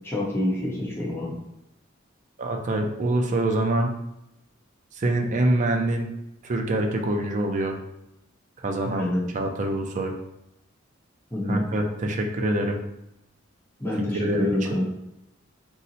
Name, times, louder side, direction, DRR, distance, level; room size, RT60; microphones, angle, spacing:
voice 1, 0.0-1.4 8.8-9.2 11.3-11.6 13.8-14.8, left 1 dB, 10° left, -6 dB, 0.8 m, -27 dB
voice 2, 2.4-3.9 4.9-6.1 6.4-7.8 8.6-10.1 11.5-12.8 14.1-14.6, right 1 dB, 40° right, 3 dB, 0.4 m, -25 dB
2.7 x 2.0 x 4.0 m, 0.86 s
head